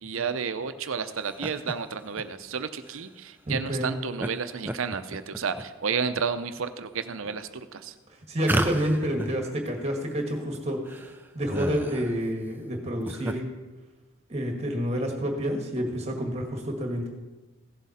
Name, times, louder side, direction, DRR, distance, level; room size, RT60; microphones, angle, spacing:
voice 1, 0.0-7.9, right 6 dB, 65° right, 10 dB, 0.6 m, -31 dB
sound 1, 1.2-1.7 2.2-2.3 2.8-3.0 4.2-4.3 4.6-5.6 6.1-6.6 7.2-7.3 8.4-9.4 9.7-9.8 9.9-10.0 10.5-10.6 10.8-12.2 12.8-13.3, right 1 dB, 10° right, 0.4 m, -31 dB
voice 2, 3.5-3.9 8.3-10.8 11.3-13.4 14.3-17.1, equal, 30° right, 2 dB, 1.7 m, -28 dB
15.5 x 7.3 x 4.3 m, 1.2 s
head